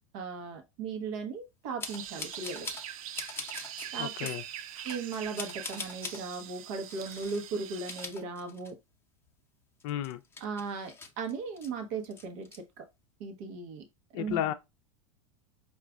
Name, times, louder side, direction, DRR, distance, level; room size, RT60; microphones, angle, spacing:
voice 1, 0.1-2.7 3.9-4.1 4.8-8.8 10.4-12.9 13.2-13.8 14.1-14.4, right 4 dB, 60° right, 0.9 m, -37 dB
sound 1, 1.8-2.9 3.1-3.9 4.2-4.4 4.9-6.2 6.8-7.4 7.7-8.9 9.3-9.4 9.8-11.7 12.0-12.6, left 4 dB, 15° left, 0.7 m, -42 dB
sound 2, 1.8-8.1, right 10 dB, 75° right, 0.5 m, -42 dB
voice 2, 4.0-4.4 9.8-10.2 14.1-14.5, left 12 dB, 55° left, 0.5 m, -32 dB
4.8 x 2.4 x 2.3 m
hypercardioid pair, 110°, 18 cm